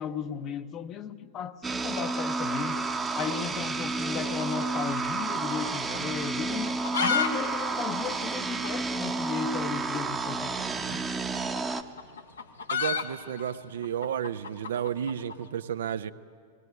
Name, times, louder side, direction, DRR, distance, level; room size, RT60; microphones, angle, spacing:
voice 1, 0.0-2.8 3.1-6.7 7.0-11.0, left 7 dB, 35° left, 0.8 m, -35 dB
sound 1, 1.6-11.8, right 3 dB, 15° right, 0.9 m, -31 dB
sound 2, 4.4-5.7 5.9-6.0 6.6-7.3 7.6-7.7 7.9-8.0 8.6-8.7 9.9-10.1 11.2-15.4, left 6 dB, 75° left, 1.2 m, -31 dB
voice 2, 12.7-16.1, right 9 dB, 70° right, 0.6 m, -32 dB
18.5 x 16.5 x 9.4 m
figure-of-eight pair, 95°, 0 cm